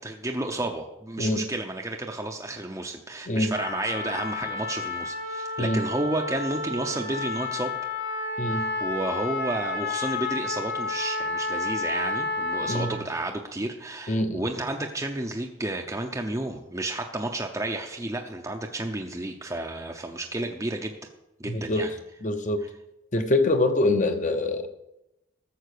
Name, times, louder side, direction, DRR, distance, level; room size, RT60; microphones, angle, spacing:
voice 1, 0.0-7.7 8.5-21.0 21.4-21.9, right 2 dB, 15° right, 2 dB, 0.7 m, -31 dB
Trumpet, 3.5-13.0, left 3 dB, 60° left, 2.9 m, -31 dB
voice 2, 14.1-14.5 21.5-21.9 22.2-22.7 23.1-24.7, left 2 dB, 35° left, 7 dB, 0.9 m, -25 dB
14.0 x 7.3 x 6.7 m, 0.92 s
head